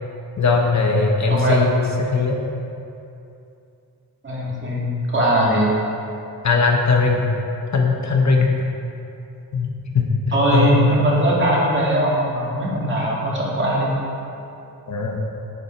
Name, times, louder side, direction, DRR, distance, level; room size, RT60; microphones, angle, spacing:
voice 1, 0.4-2.4 6.4-7.2 7.7-8.6 9.5-10.1 10.5-11.0 14.9-15.2, left 4 dB, 50° left, 1 dB, 1.1 m, -19 dB
voice 2, 4.2-5.7 10.3-14.0, right 1 dB, 30° right, -5 dB, 2.4 m, -20 dB
10.0 x 7.0 x 4.5 m, 2.7 s
wide cardioid pair, 115°, 36 cm